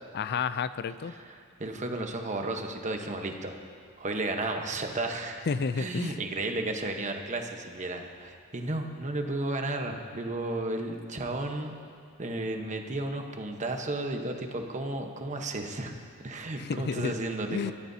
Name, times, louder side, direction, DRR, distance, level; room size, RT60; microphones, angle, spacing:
voice 1, 0.1-1.1 5.5-6.2 16.6-17.1 17.5-17.7, left 5 dB, 50° left, 14 dB, 0.4 m, -30 dB
voice 2, 1.1-3.5 4.0-5.4 5.8-11.8 12.2-15.9 16.2-17.7, right 2 dB, 35° right, 4 dB, 1.1 m, -33 dB
24.0 x 13.0 x 2.8 m, 2.2 s
head